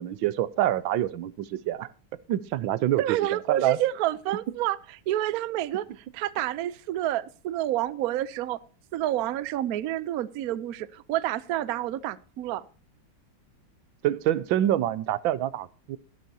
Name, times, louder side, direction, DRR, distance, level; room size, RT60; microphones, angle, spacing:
voice 1, 0.0-1.9 2.3-3.8 14.0-16.0, right 12 dB, 85° right, 18 dB, 1.4 m, -26 dB
voice 2, 3.0-4.8 5.1-8.6 8.9-12.6, right 13 dB, 65° right, 17 dB, 0.9 m, -29 dB
14.0 x 13.0 x 2.8 m, 0.37 s
omnidirectional pair, 2.1 m